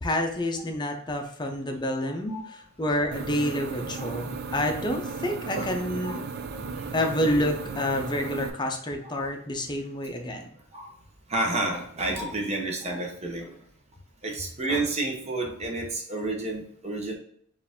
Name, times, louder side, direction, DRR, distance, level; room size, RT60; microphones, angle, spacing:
voice 1, 0.0-6.3 6.9-10.5, left 1 dB, 20° left, 3 dB, 0.6 m, -28 dB
voice 2, 2.0-2.5 4.0-4.2 5.5-5.7 6.0-6.2 6.8-6.9 9.0-9.2 10.7-10.9 11.3-13.6 14.2-17.1, right 2 dB, 35° right, 1 dB, 0.9 m, -30 dB
sound 1, 3.1-8.5, right 4 dB, 50° right, 0.4 m, -35 dB
4.6 x 2.6 x 3.6 m, 0.63 s
head